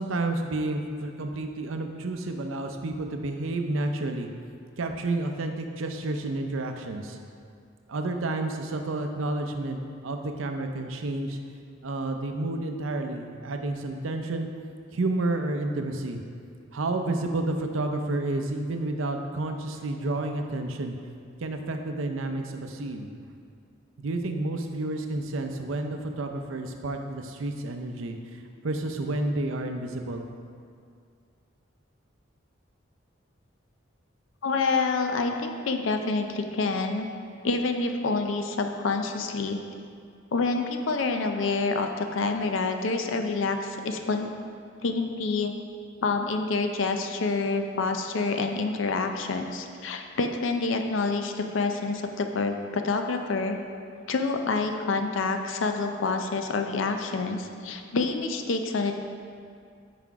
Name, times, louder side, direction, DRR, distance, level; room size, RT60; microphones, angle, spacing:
voice 1, 0.0-4.3 4.8-7.2 7.9-11.4 11.8-14.5 14.9-16.2 16.7-20.9 21.4-23.1 24.0-30.3, right 2 dB, 90° right, 5 dB, 0.6 m, -30 dB
voice 2, 34.4-37.1 37.4-39.6 40.3-44.3 44.8-45.5 46.0-53.6 54.1-58.9, left 3 dB, 80° left, 5 dB, 0.5 m, -27 dB
5.9 x 5.1 x 4.7 m, 2.3 s
head